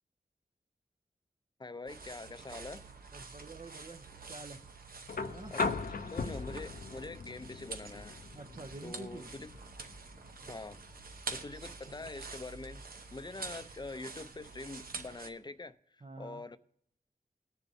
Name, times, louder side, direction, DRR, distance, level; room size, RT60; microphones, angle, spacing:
voice 1, 1.6-2.8 5.5-5.8 6.1-8.2 8.8-9.5 10.4-10.8 11.3-16.6, left 3 dB, 30° left, 0.6 m, -45 dB
sound 1, 1.9-15.3, right 4 dB, 80° right, 0.9 m, -47 dB
voice 2, 3.1-4.6 5.2-5.5 6.3-6.4 8.3-9.3 16.0-16.4, right 3 dB, 45° right, 0.7 m, -48 dB
sound 2, 5.1-13.1 14.5-14.6, left 4 dB, 75° left, 0.7 m, -40 dB
21.0 x 7.0 x 2.7 m
wide cardioid pair, 60°, 15 cm